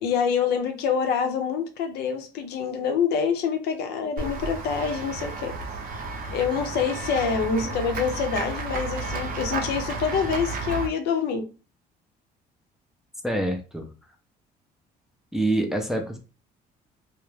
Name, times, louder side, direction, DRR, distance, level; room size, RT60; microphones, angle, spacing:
voice 1, 0.0-5.5 6.3-11.4, left 6 dB, 75° left, 0.6 m, -26 dB
Run / Walk footsteps / Bell, 4.2-10.9, right 3 dB, 55° right, 0.6 m, -32 dB
voice 2, 13.2-13.9 15.3-16.2, right 1 dB, 5° right, 0.4 m, -26 dB
2.2 x 2.0 x 3.1 m
cardioid pair, 110°, 17 cm